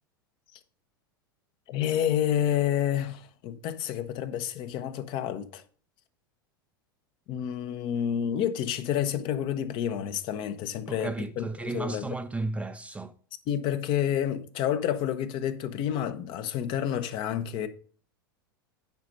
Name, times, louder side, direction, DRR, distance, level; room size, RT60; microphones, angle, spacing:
voice 1, 1.7-5.6 7.3-12.1 13.5-17.7, left 10 dB, 45° left, 1.0 m, -29 dB
voice 2, 10.9-13.1, right 3 dB, 10° right, 0.5 m, -34 dB
9.6 x 5.2 x 5.4 m
figure-of-eight pair, 85°, 12 cm